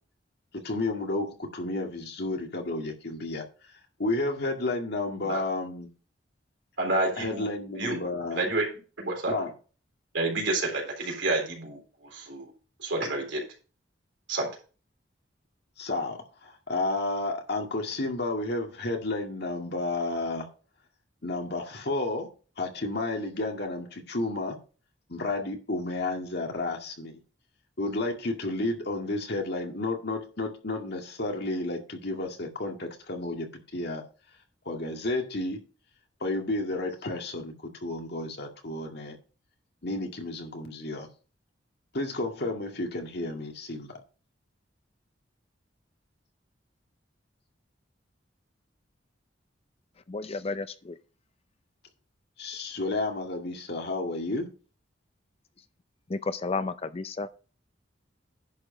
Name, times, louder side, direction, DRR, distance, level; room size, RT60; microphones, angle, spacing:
voice 1, 0.5-3.4 4.0-5.9 7.2-8.4 9.3-9.5 15.8-20.5 21.2-22.3 22.6-24.6 25.1-27.2 27.8-34.0 34.7-35.6 36.2-39.2 39.8-41.1 41.9-44.0 52.4-54.5, left 2 dB, 60° left, 2.1 m, -31 dB
voice 2, 6.8-7.5 7.8-8.0 8.3-8.7 9.0-9.3 10.1-12.5 12.8-13.4 14.3-14.5, right 2 dB, 75° right, 3.9 m, -29 dB
voice 3, 50.1-51.0 56.1-57.3, left 3 dB, 30° left, 0.5 m, -32 dB
10.5 x 4.9 x 5.4 m
head